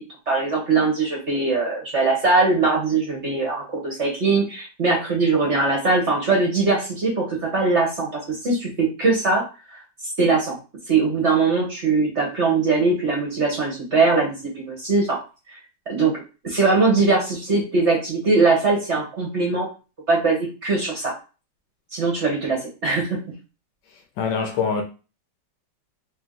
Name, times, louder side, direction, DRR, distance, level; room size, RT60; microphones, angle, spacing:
voice 1, 0.3-9.4 9.7-10.5 10.9-15.2 15.9-19.7 20.1-21.1 21.9-23.2, right 3 dB, 45° right, 1.1 m, -21 dB
voice 2, 24.2-24.8, left 5 dB, 70° left, 1.2 m, -23 dB
3.4 x 3.0 x 3.7 m
omnidirectional pair, 2.1 m